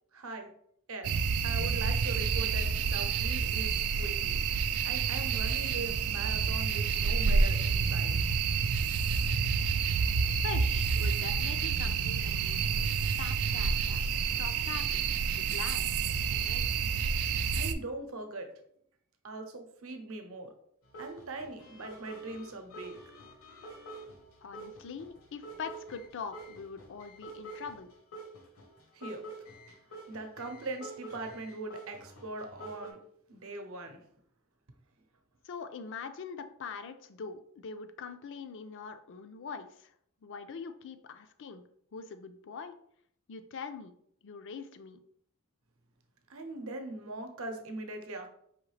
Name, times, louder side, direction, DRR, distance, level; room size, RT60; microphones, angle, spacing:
voice 1, 0.1-0.5 0.9-1.1 1.4-4.3 4.8-8.1 17.5-18.5 19.2-20.5 21.0-22.9 28.9-29.2 30.1-33.0 33.3-34.0 46.3-48.3, right 2 dB, 70° right, 5 dB, 0.7 m, -41 dB
sound 1, 1.0-17.7, right 5 dB, 90° right, 0.4 m, -29 dB
voice 2, 10.4-12.9 13.2-14.0 14.4-15.0 15.3-16.0 16.3-16.7 24.4-27.9 35.4-39.9 40.2-41.6 41.9-42.7 43.3-43.9 44.2-45.0, left 5 dB, 60° left, 9 dB, 0.4 m, -43 dB
sound 2, 20.9-32.9, right 2 dB, 75° left, 0.9 m, -47 dB
4.9 x 3.1 x 3.2 m, 0.69 s
head